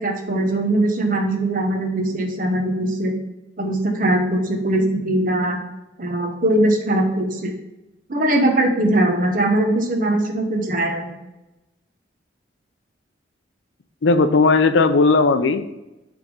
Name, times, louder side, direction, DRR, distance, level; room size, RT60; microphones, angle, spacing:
voice 1, 0.0-3.2 3.6-5.6 6.0-7.5 8.1-11.1, right 1 dB, 45° right, 3 dB, 1.0 m, -21 dB
voice 2, 14.0-15.8, left 3 dB, 90° left, 10 dB, 0.5 m, -16 dB
6.4 x 3.6 x 5.4 m, 0.97 s
head